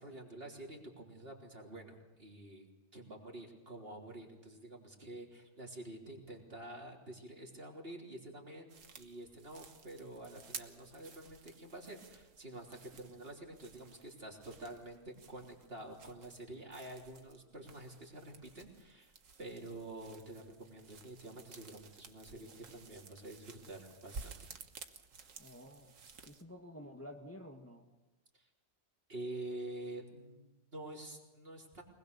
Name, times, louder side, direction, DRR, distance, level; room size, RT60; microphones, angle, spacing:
voice 1, 0.0-2.7 2.9-19.1 19.4-24.5 28.3-28.5 29.1-31.8, right 1 dB, 50° right, 0 dB, 3.8 m, -48 dB
sound 1, 8.7-26.4, right 5 dB, 90° right, 1.7 m, -54 dB
voice 2, 25.4-25.9 26.2-27.8, left 1 dB, 10° left, 2 dB, 1.6 m, -50 dB
23.5 x 20.5 x 6.9 m, 1.1 s
omnidirectional pair, 1.3 m